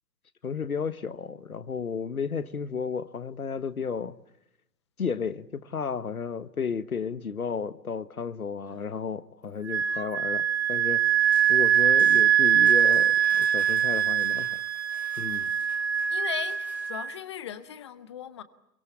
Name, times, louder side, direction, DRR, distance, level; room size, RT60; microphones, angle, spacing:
voice 1, 0.4-4.2 5.0-11.1 11.5-14.6 15.2-15.5, left 6 dB, 60° left, 1.6 m, -33 dB
Wind instrument woodwind instrument, 9.7-17.1, right 9 dB, 40° right, 1.0 m, -23 dB
sound 1, 11.2-16.9, right 4 dB, 5° right, 1.3 m, -53 dB
voice 2, 16.1-18.4, left 10 dB, 15° left, 1.0 m, -38 dB
26.0 x 23.5 x 8.2 m
figure-of-eight pair, 140°, 49 cm